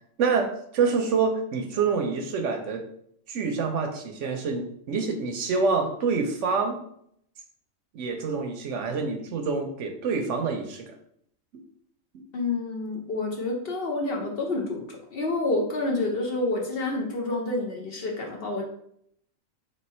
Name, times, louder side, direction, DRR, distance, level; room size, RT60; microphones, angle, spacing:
voice 1, 0.2-2.8 3.3-6.8 7.9-10.9, right 4 dB, 70° right, 4 dB, 0.9 m, -27 dB
voice 2, 12.3-18.6, left 2 dB, 55° left, 0 dB, 0.8 m, -28 dB
3.2 x 3.2 x 4.2 m, 0.69 s
omnidirectional pair, 1.4 m